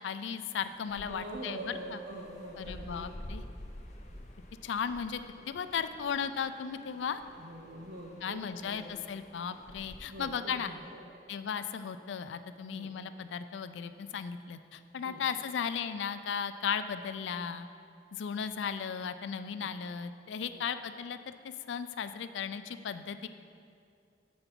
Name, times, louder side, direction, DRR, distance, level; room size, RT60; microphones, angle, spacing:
voice 1, 0.0-2.0 2.6-3.4 4.6-5.2 5.5-7.2 8.2-10.7 11.3-17.7 18.1-23.3, left 7 dB, 85° left, 11 dB, 0.4 m, -36 dB
sound 1, 0.6-10.0, left 1 dB, 40° left, 0.7 m, -50 dB
voice 2, 1.0-3.1 7.4-9.0 10.1-11.0 12.6-12.9 15.0-15.2 19.6-19.7 20.5-20.6, right 1 dB, 65° right, -3 dB, 0.7 m, -44 dB
7.0 x 5.2 x 5.9 m, 2.4 s
head